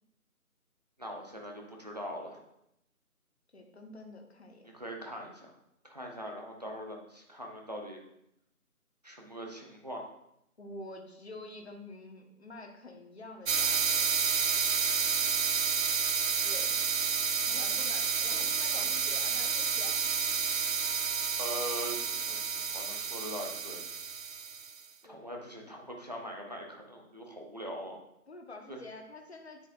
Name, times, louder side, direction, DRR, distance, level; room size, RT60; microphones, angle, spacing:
voice 1, 1.0-2.4 4.7-5.5 5.8-8.0 9.0-10.0 21.4-22.5 22.7-23.8 25.0-28.0 28.7-28.8, equal, 25° right, 0 dB, 0.9 m, -41 dB
voice 2, 3.5-4.7 6.2-6.3 10.6-14.1 16.4-16.8 17.5-20.2 25.0-25.7 28.3-29.7, left 2 dB, 45° left, 3 dB, 1.2 m, -48 dB
sound 1, 13.5-24.7, right 6 dB, 60° right, 0.5 m, -30 dB
Wind instrument woodwind instrument, 19.3-23.2, left 3 dB, 20° left, 0.9 m, -57 dB
9.5 x 8.2 x 2.5 m, 0.81 s
figure-of-eight pair, 165°, 45 cm